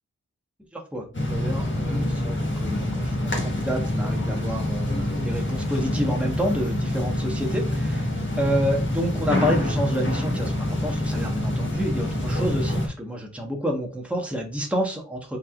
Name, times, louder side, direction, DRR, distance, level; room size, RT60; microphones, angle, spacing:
voice 1, 0.7-15.4, equal, 5° right, 0 dB, 1.3 m, -29 dB
sound 1, 1.1-12.9, left 1 dB, 40° left, 1.5 m, -26 dB
5.5 x 3.5 x 2.4 m, 0.35 s
wide cardioid pair, 70°, 30 cm